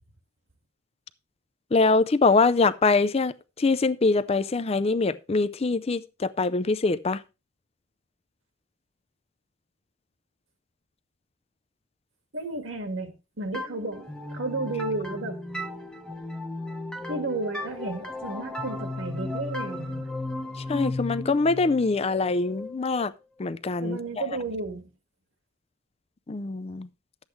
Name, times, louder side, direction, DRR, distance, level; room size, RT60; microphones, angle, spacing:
voice 1, 1.7-7.2 20.7-23.1 23.4-24.2 26.3-26.9, left 3 dB, 30° left, 0.4 m, -24 dB
voice 2, 12.3-13.1 13.4-15.4 17.1-20.0 23.8-24.9, right 2 dB, 65° right, 1.8 m, -32 dB
sound 1, 13.5-23.1, left 2 dB, 5° left, 0.8 m, -35 dB
12.0 x 8.1 x 3.1 m
head